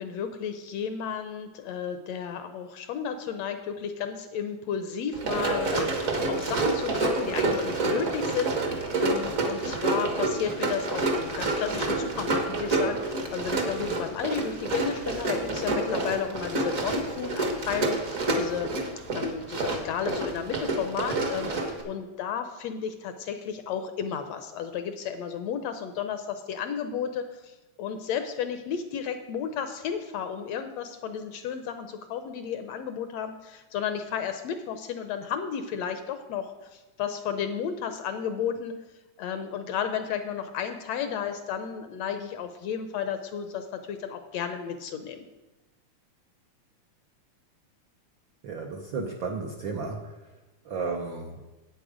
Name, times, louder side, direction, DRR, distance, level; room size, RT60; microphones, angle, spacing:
voice 1, 0.0-18.7 19.1-38.8 39.2-45.3, left 7 dB, 75° left, 8 dB, 1.6 m, -33 dB
Run, 5.1-21.8, right 2 dB, 45° right, 1.0 m, -28 dB
voice 2, 48.4-50.3 50.6-51.4, right 4 dB, 75° right, 2 dB, 1.1 m, -33 dB
10.0 x 8.6 x 5.0 m, 1.1 s
omnidirectional pair, 3.4 m